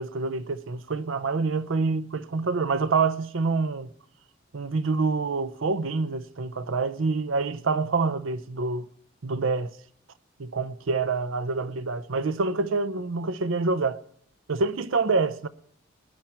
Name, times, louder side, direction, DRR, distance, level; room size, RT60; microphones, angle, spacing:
voice 1, 0.0-3.9 4.5-8.9 9.2-9.7 10.4-14.0 14.5-15.5, right 4 dB, 90° right, 0.7 m, -26 dB
19.0 x 10.0 x 4.4 m
head